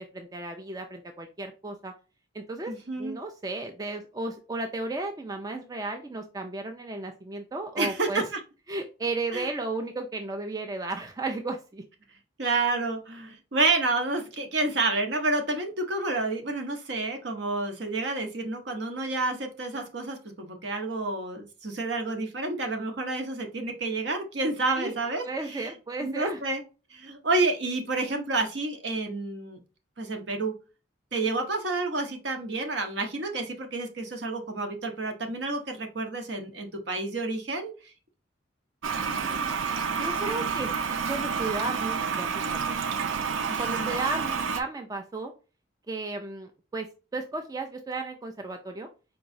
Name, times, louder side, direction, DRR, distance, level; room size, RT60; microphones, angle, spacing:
voice 1, 0.1-1.9 2.3-8.3 8.7-11.8 24.8-24.9 25.2-26.4 31.1-31.3 39.0-39.6 39.9-42.6 43.6-45.3 45.9-46.9 47.1-48.9, right 2 dB, 20° right, 5 dB, 0.3 m, -34 dB
voice 2, 2.7-3.2 7.8-8.4 9.3-9.5 12.4-25.7 26.0-26.6 26.9-29.6 30.0-30.5 31.1-37.7 43.5-43.9, right 3 dB, 65° right, 4 dB, 0.8 m, -29 dB
Toilet flush, 38.8-44.6, right 6 dB, 85° right, 0.5 m, -29 dB
4.5 x 2.9 x 2.6 m, 0.33 s
head